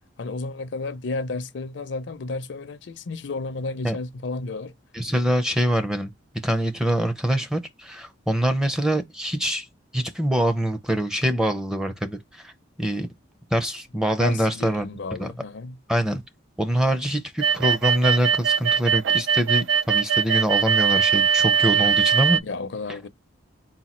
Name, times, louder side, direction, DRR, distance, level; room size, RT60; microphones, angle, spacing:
voice 1, 0.2-4.7 14.2-15.8 22.4-23.1, left 3 dB, 65° left, 0.5 m, -32 dB
voice 2, 4.9-6.1 6.4-9.7 9.9-12.5 12.8-13.1 13.5-14.9 15.2-15.3 15.9-16.2 16.6-22.4, right 1 dB, 5° right, 0.5 m, -24 dB
sound 1, 17.4-22.4, right 6 dB, 75° right, 0.4 m, -21 dB
4.1 x 2.2 x 4.2 m
head